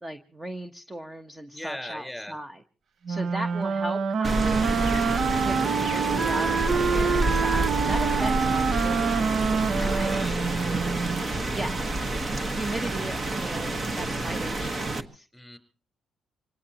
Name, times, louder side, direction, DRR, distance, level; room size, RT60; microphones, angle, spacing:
voice 1, 0.0-2.6 3.1-4.7 5.4-10.3 11.5-12.1 12.5-15.3, right 1 dB, 15° right, 8 dB, 1.1 m, -37 dB
voice 2, 1.5-2.4 9.7-10.4 12.2-12.6 15.3-15.6, left 1 dB, ahead, 7 dB, 4.4 m, -39 dB
Wind instrument woodwind instrument, 3.1-11.2, right 5 dB, 55° right, 0.8 m, -26 dB
Rain, 4.2-15.0, right 2 dB, 35° right, 1.4 m, -28 dB
sound 1, 4.3-10.5, equal, 75° right, 6.6 m, -51 dB
26.0 x 18.5 x 3.0 m, 0.38 s
cardioid pair, 90°, 0 cm